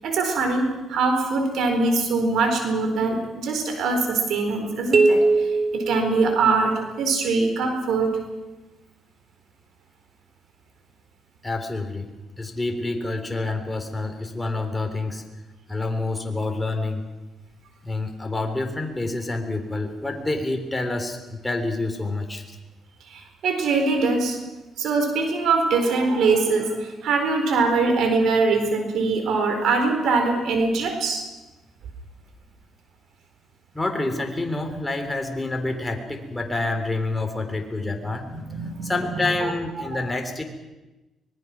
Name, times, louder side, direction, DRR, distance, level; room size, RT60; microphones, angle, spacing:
voice 1, 0.0-8.2 23.0-24.4 24.8-31.2 38.3-39.5 39.9-40.0, right 3 dB, 75° right, 5 dB, 4.3 m, -23 dB
sound 1, 4.9-6.9, right 3 dB, 40° right, 3.0 m, -21 dB
voice 2, 11.4-12.1 12.4-15.2 15.7-17.0 17.8-22.4 33.7-40.4, left 2 dB, 15° left, 4 dB, 3.4 m, -28 dB
24.5 x 20.0 x 6.1 m, 1.1 s
cardioid pair, 90°, 0 cm